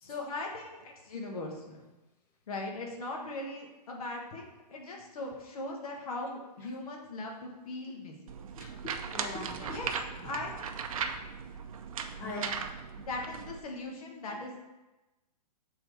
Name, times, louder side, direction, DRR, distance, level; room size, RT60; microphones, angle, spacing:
voice 1, 0.0-1.8 2.5-8.3 9.6-9.9 10.2-10.7 12.2-12.6 13.0-14.6, left 2 dB, 60° left, 0 dB, 1.4 m, -39 dB
sound 1, 8.3-13.6, right 6 dB, 55° right, 0.6 m, -38 dB
voice 2, 8.5-9.8 10.2-10.3 12.2-12.6, left 2 dB, 10° left, 2 dB, 0.5 m, -42 dB
6.5 x 3.8 x 4.6 m, 1.1 s
hypercardioid pair, 165°, 21 cm